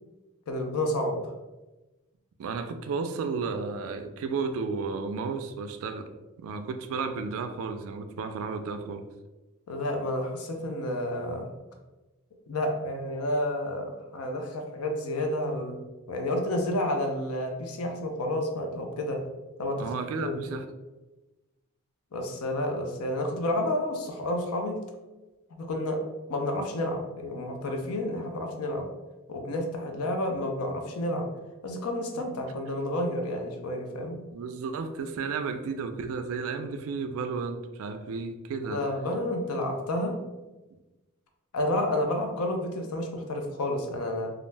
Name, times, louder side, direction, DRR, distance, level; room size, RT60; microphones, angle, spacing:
voice 1, 0.5-1.3 9.7-11.5 12.5-15.8 16.1-19.2 19.6-19.9 20.2-20.4 22.1-24.8 25.5-26.0 26.3-28.9 29.3-31.3 31.6-34.2 38.7-40.2 41.5-44.3, left 1 dB, 75° left, 3 dB, 0.5 m, -30 dB
voice 2, 2.4-6.1 6.4-9.0 19.8-20.6 32.2-32.3 34.3-38.8, right 4 dB, 65° right, 9 dB, 0.3 m, -33 dB
2.4 x 2.1 x 3.2 m, 1.1 s
head